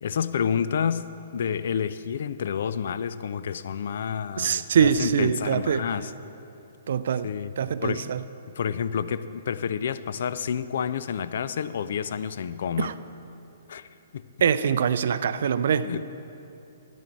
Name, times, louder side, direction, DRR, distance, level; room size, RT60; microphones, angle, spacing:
voice 1, 0.0-1.1 1.3-6.1 7.2-7.5 7.8-8.1 8.5-12.9 13.7-14.3 15.8-16.0, left 7 dB, 55° left, 14 dB, 0.4 m, -29 dB
voice 2, 4.4-5.8 6.9-7.3 7.6-8.2 12.8-12.9 14.4-16.0, right 7 dB, 55° right, 14 dB, 0.4 m, -23 dB
13.5 x 10.0 x 4.6 m, 2.8 s
figure-of-eight pair, 120°, 0 cm